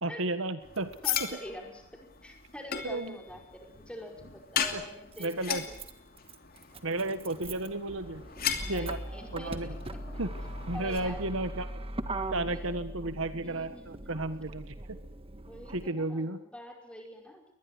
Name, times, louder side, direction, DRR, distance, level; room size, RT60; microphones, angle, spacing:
voice 1, 0.0-0.9 1.2-1.4 2.8-3.2 4.7-4.8 5.2-5.7 6.8-8.2 8.6-9.0 9.3-9.7 10.2-10.3 10.7-11.7 12.3-15.0 15.7-16.4, right 2 dB, 65° right, 11 dB, 1.5 m, -33 dB
sound 1, 0.6-11.0, left 8 dB, 45° left, 2.7 m, -38 dB
voice 2, 1.0-1.8 2.2-5.8 8.6-10.2 10.7-11.2 12.4-12.7 13.4-14.2 15.5-17.5, left 1 dB, 5° left, 2 dB, 5.1 m, -45 dB
Motor vehicle (road), 3.5-3.6 4.8-15.9, right 1 dB, 25° right, 1.7 m, -41 dB
22.5 x 20.5 x 9.9 m, 0.74 s
head